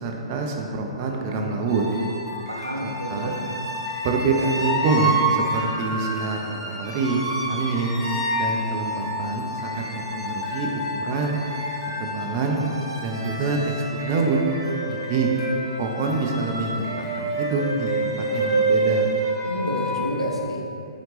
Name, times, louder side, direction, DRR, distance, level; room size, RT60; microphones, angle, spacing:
voice 1, 0.0-1.9 3.1-3.4 4.0-8.0 8.3-11.4 12.0-12.6 13.0-14.5 14.9-15.3 15.8-19.1, right 3 dB, 35° right, 2 dB, 0.4 m, -26 dB
sound 1, 1.7-20.1, right 2 dB, 65° right, 0.9 m, -28 dB
sound 2, 1.9-19.5, left 2 dB, 5° right, 0.8 m, -40 dB
voice 2, 2.5-3.4 19.5-20.6, equal, 85° right, 0 dB, 0.5 m, -29 dB
4.0 x 2.8 x 3.2 m, 2.7 s
figure-of-eight pair, 120°, 3 cm